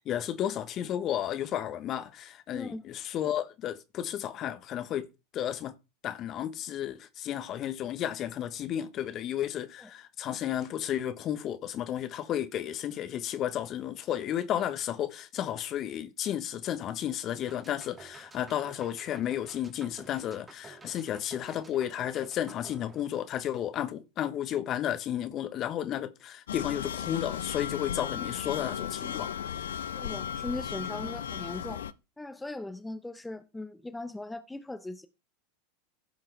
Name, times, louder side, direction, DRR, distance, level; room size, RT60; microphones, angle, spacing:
voice 1, 0.0-5.0 5.3-5.7 6.0-29.8, left 11 dB, 40° left, 1.1 m, -33 dB
voice 2, 2.5-2.8 9.8-9.9 29.9-31.8 32.2-35.1, left 2 dB, 10° left, 0.8 m, -39 dB
sound 1, 17.5-23.7, right 4 dB, 20° right, 1.8 m, -52 dB
sound 2, 26.5-31.9, left 9 dB, 75° left, 0.5 m, -35 dB
16.0 x 5.8 x 3.3 m
figure-of-eight pair, 85°, 0 cm